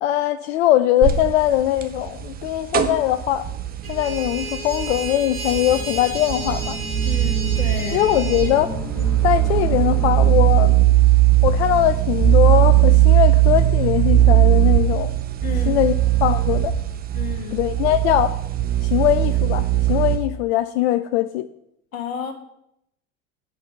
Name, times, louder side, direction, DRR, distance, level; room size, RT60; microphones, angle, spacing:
voice 1, 0.0-3.5 3.9-6.8 7.9-8.7 9.2-10.8 11.4-15.1 15.7-15.9 16.2-16.7 17.5-18.4 18.8-21.5, left 13 dB, 50° left, 0.5 m, -21 dB
sound 1, 1.0-20.2, right 14 dB, 20° right, 0.7 m, -19 dB
sound 2, 3.8-8.5, right 3 dB, 85° right, 2.1 m, -33 dB
sound 3, 5.3-10.7, equal, 5° left, 1.9 m, -35 dB
voice 2, 7.0-8.1 15.4-15.8 17.1-17.6 21.9-22.3, left 6 dB, 70° left, 1.5 m, -31 dB
9.0 x 5.3 x 6.2 m
figure-of-eight pair, 75°, 43 cm